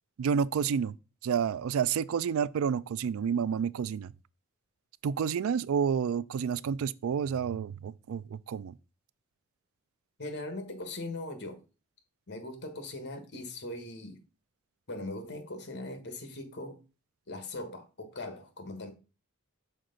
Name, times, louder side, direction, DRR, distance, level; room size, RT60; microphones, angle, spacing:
voice 1, 0.2-1.0 1.2-4.1 5.0-8.8, right 7 dB, 70° right, 0.3 m, -29 dB
voice 2, 10.2-11.6 12.3-14.2 14.9-16.8 17.3-18.9, left 2 dB, 55° left, 1.4 m, -40 dB
6.3 x 4.4 x 3.9 m
head